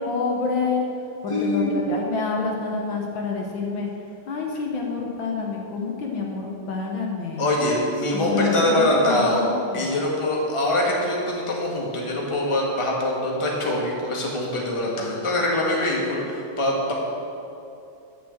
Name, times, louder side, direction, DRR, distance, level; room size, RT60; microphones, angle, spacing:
voice 1, 0.0-0.8 1.2-3.9 4.3-7.5 8.3-10.0, left 4 dB, 65° left, 0 dB, 1.7 m, -27 dB
voice 2, 1.3-1.7 7.4-9.4 9.7-16.9, left 1 dB, 15° left, -3 dB, 1.5 m, -23 dB
10.0 x 6.5 x 7.8 m, 2.7 s
omnidirectional pair, 2.4 m